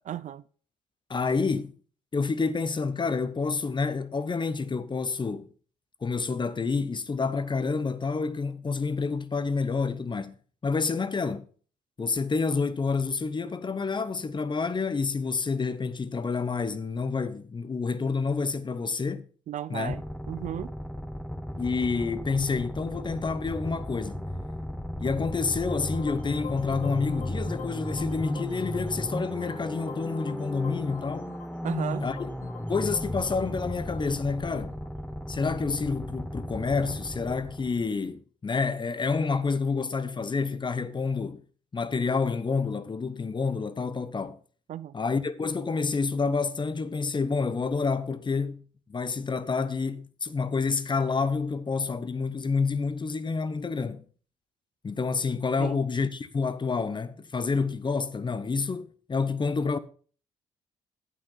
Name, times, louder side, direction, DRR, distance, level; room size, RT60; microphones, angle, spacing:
voice 1, 0.1-0.4 19.5-20.7 31.6-32.0 44.7-44.9 55.6-55.8, right 11 dB, 55° right, 0.5 m, -35 dB
voice 2, 1.1-1.7 2.1-5.5 6.0-10.4 10.6-11.5 12.0-19.3 19.7-19.9 21.6-24.2 25.0-31.3 32.0-32.2 32.7-34.8 35.3-41.4 41.7-44.4 44.9-48.6 48.9-54.0 54.8-59.8, left 4 dB, 30° left, 0.9 m, -28 dB
sound 1, 19.9-37.9, equal, 5° left, 1.1 m, -35 dB
sound 2, 25.4-35.6, left 7 dB, 60° left, 1.8 m, -46 dB
9.2 x 8.6 x 4.0 m
hypercardioid pair, 45°, 15 cm